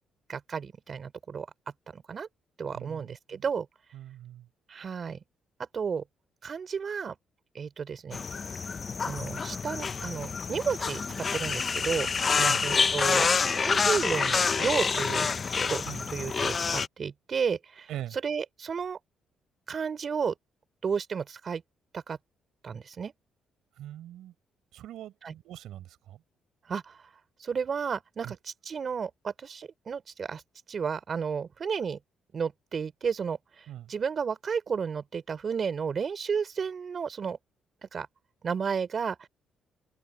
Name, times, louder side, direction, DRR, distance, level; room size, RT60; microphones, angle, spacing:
voice 1, 0.3-1.5 1.9-2.3 2.6-3.7 4.7-5.2 5.7-6.0 6.4-7.2 7.5-8.2 9.0-12.1 12.6-13.3 13.6-15.8 16.1-17.9 18.2-19.0 19.7-20.3 20.8-21.6 21.9-22.2 22.6-23.1 25.2-25.3 26.7-27.0 27.4-30.4 30.7-32.0 32.3-33.4 33.9-37.4 37.8-38.1 38.4-39.3, right 6 dB, 45° right, 3.6 m, -32 dB
voice 2, 2.7-3.5 3.9-4.5 12.3-12.7 15.8-16.1 17.9-18.2 23.8-24.3 24.7-26.2 28.2-28.4 33.7-33.9, right 12 dB, 80° right, 5.5 m, -41 dB
sound 1, 8.1-16.9, left 5 dB, 40° left, 0.7 m, -27 dB
open air
cardioid pair, 90°, 0 cm